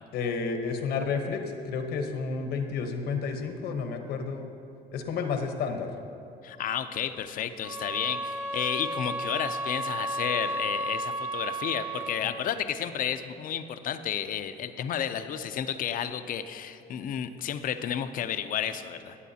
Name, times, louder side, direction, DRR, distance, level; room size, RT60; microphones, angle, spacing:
voice 1, 0.1-4.5 4.9-5.9 12.2-12.3, left 5 dB, 70° left, 6 dB, 1.0 m, -31 dB
voice 2, 6.4-19.2, left 9 dB, 55° left, 10 dB, 0.6 m, -32 dB
sound 1, 7.6-12.4, right 2 dB, 70° right, 2.5 m, -33 dB
16.5 x 8.3 x 2.8 m, 2.8 s
cardioid pair, 110°, 17 cm